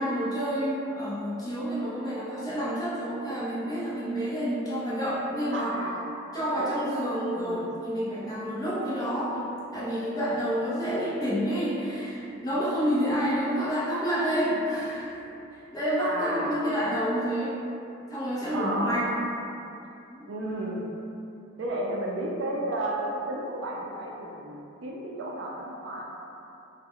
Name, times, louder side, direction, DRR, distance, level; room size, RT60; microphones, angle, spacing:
voice 1, 0.0-5.7 6.3-9.4 9.7-15.2 15.7-17.6 18.1-19.1 20.1-20.3, equal, 20° left, -9 dB, 0.5 m, -29 dB
voice 2, 5.5-6.0 6.3-7.6 16.0-16.5 18.5-19.0 20.3-20.8 21.6-26.2, right 1 dB, 60° right, -2 dB, 0.3 m, -33 dB
2.1 x 2.0 x 3.6 m, 2.8 s
head